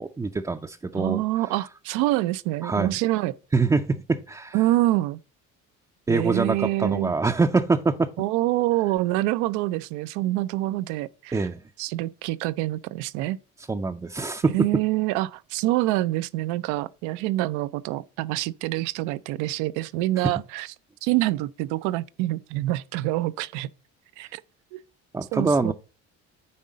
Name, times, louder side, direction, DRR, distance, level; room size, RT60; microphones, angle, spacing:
voice 1, 0.0-1.2 2.6-2.9 3.5-4.6 6.1-8.1 11.3-11.6 13.7-14.5 25.1-25.7, right 3 dB, 10° right, 0.4 m, -24 dB
voice 2, 0.9-3.4 4.5-5.2 6.1-7.1 8.2-11.4 11.8-13.4 14.5-20.7 21.0-23.7 24.2-24.4 24.7-24.8 25.3-25.7, right 17 dB, 85° right, 0.5 m, -26 dB
9.5 x 3.7 x 5.1 m
cardioid pair, 105°, 29 cm